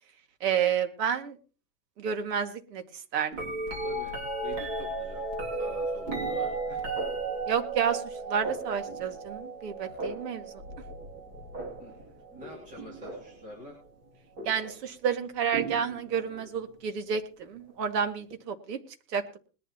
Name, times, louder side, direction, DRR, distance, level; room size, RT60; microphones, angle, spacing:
voice 1, 0.4-1.4 2.0-2.8 3.1-3.5 7.5-8.0 8.3-10.5 14.4-18.8 19.1-19.4, right 7 dB, 75° right, 7 dB, 2.2 m, -30 dB
sound 1, 3.3-13.4 14.4-14.8 15.5-16.5 18.3-18.4, right 3 dB, 30° right, 2.6 m, -35 dB
voice 2, 3.8-4.2 4.4-5.2 5.6-6.8 11.8-13.8, left 1 dB, 15° right, -4 dB, 3.0 m, -46 dB
21.0 x 11.0 x 3.0 m, 0.35 s
supercardioid pair, 175°, 49 cm